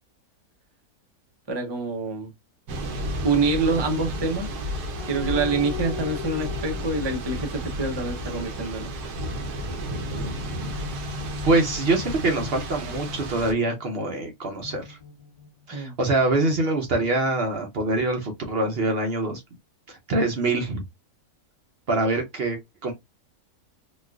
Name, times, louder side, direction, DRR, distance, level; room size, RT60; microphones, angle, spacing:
voice 1, 1.5-2.3 3.2-4.5 5.1-8.9 15.7-15.9, right 3 dB, 35° right, 0.4 m, -26 dB
Thunder / Rain, 2.7-13.5, equal, 85° right, 1.3 m, -32 dB
sound 1, 5.0-8.6 10.1-13.8 14.6-15.9, left 6 dB, 20° left, 1.2 m, -39 dB
voice 2, 11.5-15.0 15.7-19.4 19.9-20.8 21.9-22.9, right 2 dB, 55° right, 0.7 m, -24 dB
4.1 x 2.4 x 2.3 m
omnidirectional pair, 1.6 m